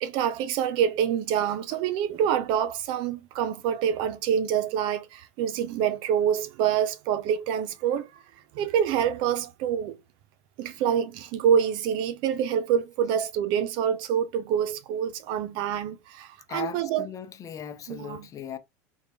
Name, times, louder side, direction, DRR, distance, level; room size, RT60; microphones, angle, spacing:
voice 1, 0.0-8.2 8.5-10.0 10.6-17.1 17.9-18.3, right 8 dB, 55° right, 0.6 m, -26 dB
voice 2, 16.5-18.6, left 8 dB, 35° left, 0.7 m, -38 dB
3.7 x 2.9 x 2.8 m
hypercardioid pair, 85°, 10 cm